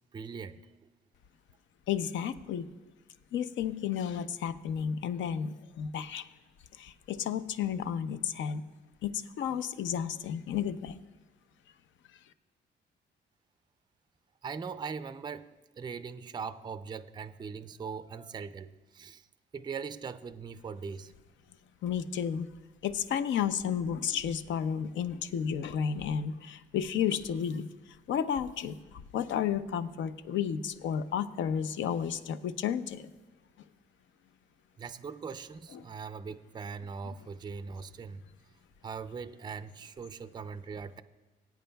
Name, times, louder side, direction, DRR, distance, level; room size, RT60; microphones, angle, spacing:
voice 1, 0.1-0.9 14.4-15.5 15.8-19.3 19.5-21.1 34.8-38.2 38.8-41.0, right 5 dB, 20° right, 12 dB, 0.4 m, -40 dB
voice 2, 1.9-2.7 3.3-6.3 6.8-8.6 9.0-11.0 21.8-22.5 22.8-33.1 35.7-35.8 37.0-37.1, left 8 dB, 70° left, 12 dB, 0.6 m, -32 dB
19.0 x 9.1 x 2.3 m, 1.2 s
cardioid pair, 90°, 20 cm